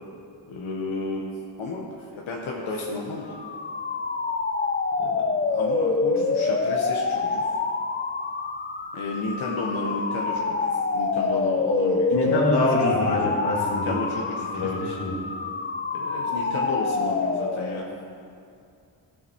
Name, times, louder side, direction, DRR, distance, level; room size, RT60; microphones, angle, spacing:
voice 1, 0.5-1.3 1.6-3.3 5.0-7.4 8.9-12.5 13.7-14.9 15.9-17.9, left 3 dB, 90° left, -3 dB, 1.4 m, -32 dB
sound 1, 3.3-18.0, left 4 dB, 25° left, 0.4 m, -26 dB
voice 2, 12.1-14.0 14.5-15.2, left 1 dB, 60° left, -3 dB, 2.3 m, -25 dB
16.5 x 7.2 x 4.6 m, 2.4 s
wide cardioid pair, 160°, 46 cm